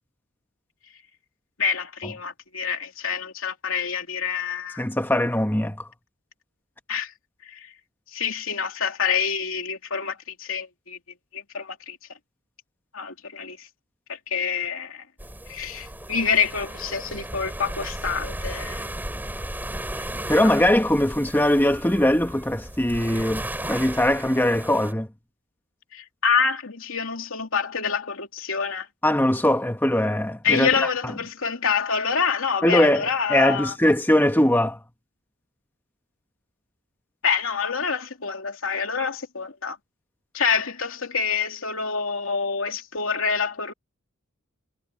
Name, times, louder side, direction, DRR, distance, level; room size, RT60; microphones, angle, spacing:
voice 1, 1.6-4.8 6.9-7.1 7.4-7.7 8.1-11.0 11.3-12.0 12.9-13.7 14.1-15.1 15.5-18.9 20.4-20.5 25.9-28.9 30.4-33.8 37.2-39.8 40.3-43.7, left 6 dB, 70° left, 3.1 m, -27 dB
voice 2, 4.8-5.9 20.3-25.1 29.0-30.7 32.6-34.8, left 1 dB, 10° left, 1.3 m, -21 dB
sound 1, 15.2-24.9, right 1 dB, 10° right, 3.9 m, -35 dB
head